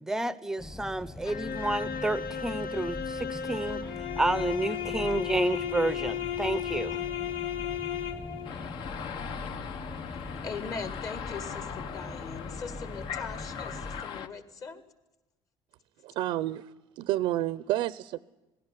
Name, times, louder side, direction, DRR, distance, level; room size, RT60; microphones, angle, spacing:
voice 1, 0.0-3.8 4.2-7.0, right 2 dB, 5° right, 17 dB, 0.7 m, -30 dB
sound 1, 0.6-14.0, left 1 dB, 15° left, 1.2 m, -42 dB
sound 2, 1.2-8.5, left 9 dB, 75° left, 1.6 m, -34 dB
sound 3, 8.4-14.3, left 7 dB, 60° left, 1.3 m, -39 dB
voice 2, 10.4-14.8, left 5 dB, 40° left, 11 dB, 2.0 m, -40 dB
voice 3, 16.0-18.2, right 14 dB, 70° right, 17 dB, 0.6 m, -30 dB
19.0 x 16.0 x 9.8 m, 1.0 s
cardioid pair, 160°, 9 cm